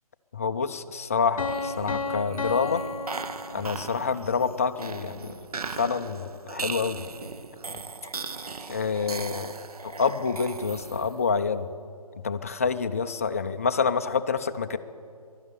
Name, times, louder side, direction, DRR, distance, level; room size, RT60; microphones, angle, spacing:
voice 1, 0.3-2.8 3.5-5.5 5.8-7.0 8.7-9.5 10.0-11.7 12.2-14.8, left 5 dB, 25° left, 10 dB, 0.4 m, -27 dB
Piano, 1.4-4.2, left 3 dB, 60° left, 0.8 m, -33 dB
sound 1, 1.4-11.3, right 4 dB, 75° right, 0.8 m, -38 dB
12.0 x 11.0 x 9.7 m, 2.4 s
figure-of-eight pair, 155°, 19 cm